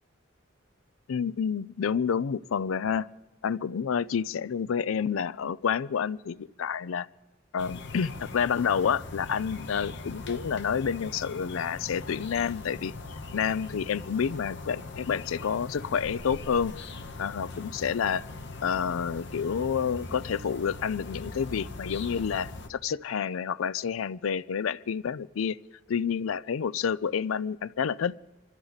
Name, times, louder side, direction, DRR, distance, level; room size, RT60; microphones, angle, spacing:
voice 1, 1.1-3.1 3.4-7.1 7.5-12.9 13.3-16.7 17.2-18.2 18.6-25.6 25.9-28.1, left 7 dB, 90° left, 0.4 m, -29 dB
sound 1, 7.6-22.7, left 3 dB, 60° left, 1.1 m, -41 dB
24.5 x 14.5 x 4.0 m
head